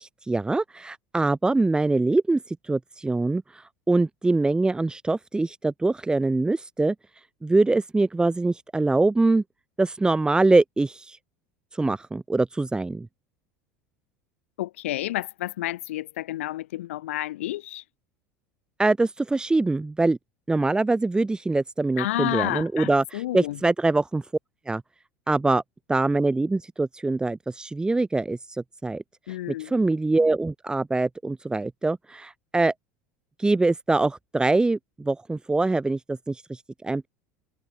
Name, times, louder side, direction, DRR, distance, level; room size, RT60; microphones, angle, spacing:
voice 1, 0.0-6.9 7.4-9.4 9.8-11.2 11.7-13.1 18.8-20.2 20.5-24.2 24.7-24.8 25.3-25.6 25.9-29.0 29.3-32.7 33.4-37.1, right 2 dB, 10° right, 7.6 m, -24 dB
voice 2, 14.6-17.8 22.0-23.6 29.3-29.7, left 15 dB, 65° left, 7.2 m, -30 dB
figure-of-eight pair, 75°, 8 cm